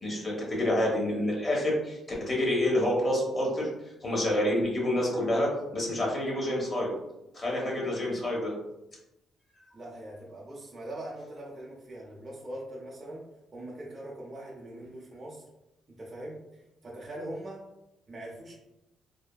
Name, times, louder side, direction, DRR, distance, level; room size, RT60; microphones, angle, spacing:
voice 1, 0.0-3.7 4.0-6.9 7.3-8.5, left 1 dB, 30° left, -2 dB, 1.0 m, -28 dB
voice 2, 9.7-13.3 13.5-15.5 15.9-17.6 18.1-18.5, right 1 dB, 30° right, -4 dB, 0.6 m, -42 dB
3.3 x 2.1 x 2.2 m, 0.89 s
cardioid pair, 90°, 0 cm